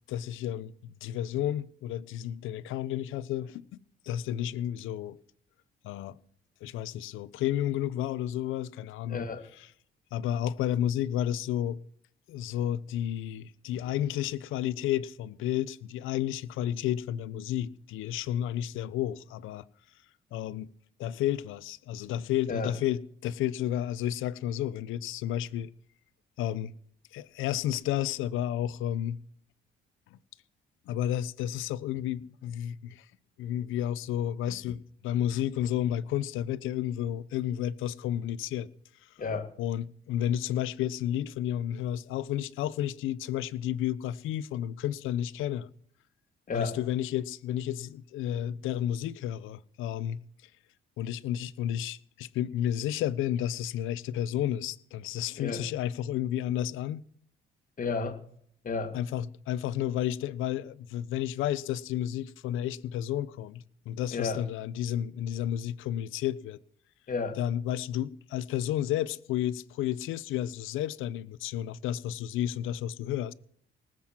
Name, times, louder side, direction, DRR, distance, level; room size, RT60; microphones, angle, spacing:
voice 1, 0.1-3.8 4.1-5.2 5.8-6.2 6.6-9.3 9.6-9.7 10.1-11.8 12.3-19.7 20.3-20.7 21.0-25.7 26.4-26.7 27.1-29.2 30.1-30.2 30.9-33.1 33.4-38.7 39.0-39.1 39.6-45.7 46.5-50.2 51.0-57.0 58.9-66.6 67.4-73.3, left 11 dB, 90° left, 0.7 m, -31 dB
voice 2, 9.1-9.5 22.5-22.8 39.2-39.5 46.5-46.8 55.4-55.7 57.8-58.2 58.6-59.0 64.1-64.4 67.1-67.4, left 4 dB, 45° left, 2.3 m, -32 dB
19.5 x 7.7 x 7.4 m
cardioid pair, 90°, 20 cm